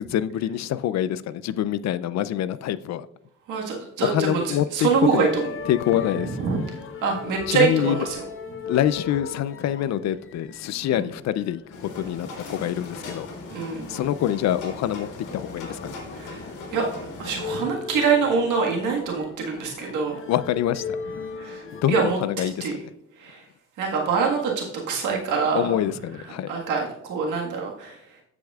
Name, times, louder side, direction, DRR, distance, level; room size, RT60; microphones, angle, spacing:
voice 1, 0.0-3.1 4.0-5.3 5.7-6.4 7.5-8.0 8.7-11.6 11.9-13.3 13.9-15.1 15.3-15.9 20.3-21.0 21.7-22.6 25.5-26.5, left 11 dB, 60° left, 0.4 m, -25 dB
voice 2, 3.5-5.3 6.2-6.6 7.0-8.2 10.9-11.0 13.5-13.9 16.1-16.9 17.2-20.2 21.4-22.8 23.2-23.4 23.8-25.8 26.5-28.0, right 5 dB, 85° right, 1.6 m, -25 dB
sound 1, 5.1-21.8, left 5 dB, 45° left, 0.9 m, -39 dB
sound 2, 11.7-17.6, left 2 dB, 85° left, 1.8 m, -39 dB
14.0 x 4.9 x 2.4 m
cardioid pair, 90°, 30 cm